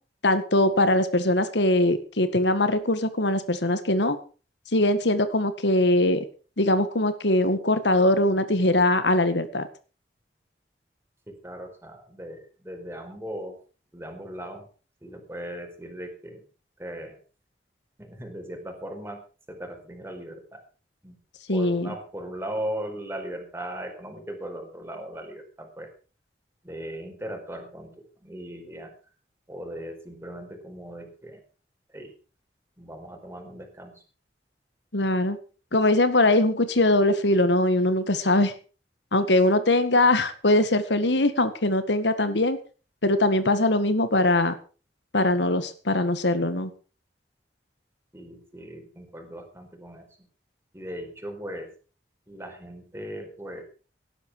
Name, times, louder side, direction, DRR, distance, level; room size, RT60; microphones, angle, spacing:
voice 1, 0.2-4.2 4.7-6.2 6.6-9.7 21.5-21.9 34.9-35.4 35.7-38.5 39.1-42.6 43.0-44.5 45.1-46.7, left 1 dB, 85° left, 11 dB, 1.9 m, -22 dB
voice 2, 11.3-13.6 13.9-14.7 15.0-16.4 16.8-17.2 18.0-19.2 19.5-20.6 21.0-21.2 21.5-25.9 26.6-28.9 29.5-31.4 31.9-32.1 32.8-34.0 48.1-50.3 50.7-51.7 52.3-53.6, equal, 15° right, 3 dB, 4.6 m, -38 dB
18.0 x 12.0 x 4.9 m, 0.37 s
head